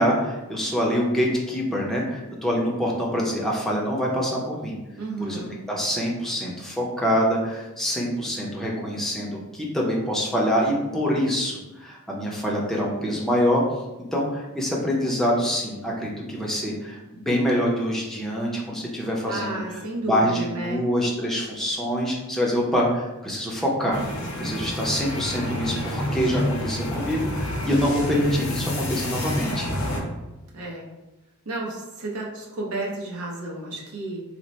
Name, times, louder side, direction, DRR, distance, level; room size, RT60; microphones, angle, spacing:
voice 1, 0.0-4.7 5.2-5.4 5.7-13.6 14.1-19.5 20.0-24.0 24.4-29.7, equal, ahead, -4 dB, 0.5 m, -25 dB
voice 2, 5.0-5.6 19.3-20.8 30.5-30.8 31.4-34.2, right 2 dB, 75° right, -3 dB, 0.8 m, -32 dB
sound 1, 23.9-30.0, left 1 dB, 65° left, 0.7 m, -28 dB
3.0 x 2.0 x 4.0 m, 1.1 s
head